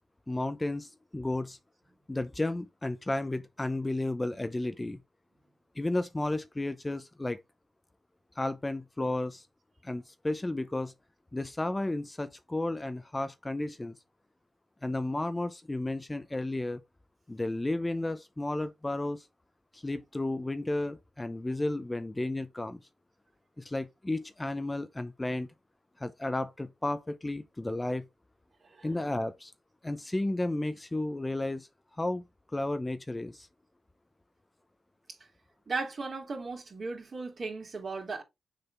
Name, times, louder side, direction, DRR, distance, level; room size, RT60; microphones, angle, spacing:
voice 1, 0.3-1.6 2.1-5.0 5.8-7.4 8.4-9.4 9.8-10.9 11.3-13.9 14.8-16.8 17.3-19.2 19.7-22.8 23.6-25.5 26.0-28.0 28.8-29.5 29.8-31.7 32.0-32.2 32.5-33.5, left 2 dB, 20° left, 0.7 m, -33 dB
voice 2, 35.7-38.2, right 3 dB, 50° right, 2.7 m, -36 dB
6.7 x 4.2 x 3.4 m
cardioid pair, 60°, 0 cm